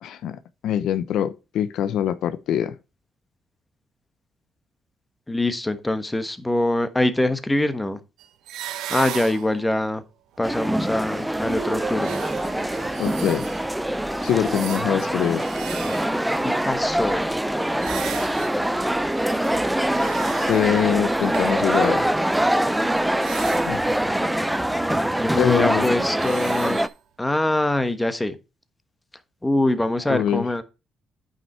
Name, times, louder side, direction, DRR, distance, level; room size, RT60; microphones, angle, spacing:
voice 1, 0.0-2.7 13.0-13.4 14.2-15.4 20.5-22.0 23.7-23.8 25.3-25.9 30.1-30.4, left 10 dB, 80° left, 0.7 m, -23 dB
voice 2, 5.3-8.0 8.9-10.0 10.4-12.2 16.4-17.5 23.9-26.8 27.2-28.4 29.4-30.6, left 1 dB, 10° left, 1.2 m, -24 dB
sound 1, 8.2-9.7 10.3-13.7 14.2-16.5 17.8-23.9 25.2-26.9, right 11 dB, 90° right, 0.8 m, -39 dB
sound 2, 10.4-26.9, right 1 dB, 5° right, 0.6 m, -24 dB
sound 3, 11.5-14.4, right 5 dB, 50° right, 1.6 m, -35 dB
9.2 x 5.7 x 4.3 m
cardioid pair, 90°, 0 cm